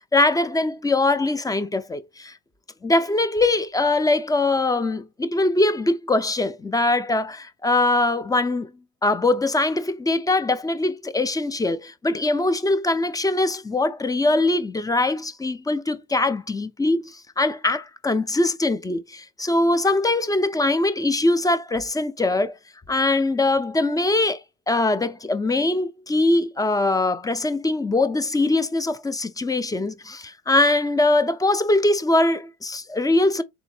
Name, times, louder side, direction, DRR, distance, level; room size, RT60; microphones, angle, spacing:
voice 1, 0.1-2.3 2.8-8.7 9.0-22.5 22.9-24.4 24.7-33.4, left 2 dB, 10° left, 0.4 m, -22 dB
3.8 x 2.6 x 4.2 m
supercardioid pair, 80°, 41 cm